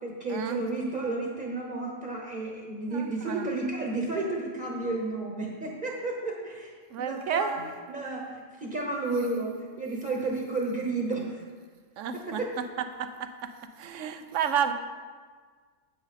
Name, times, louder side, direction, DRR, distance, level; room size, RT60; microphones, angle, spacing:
voice 1, 0.0-6.7 7.0-11.4 12.1-12.5, right 2 dB, 40° right, -1 dB, 1.2 m, -32 dB
voice 2, 2.9-3.5 6.9-7.5 12.0-12.4 13.0-13.3 13.8-14.7, right 8 dB, 70° right, 9 dB, 1.0 m, -30 dB
9.6 x 8.5 x 4.1 m, 1.6 s
omnidirectional pair, 1.4 m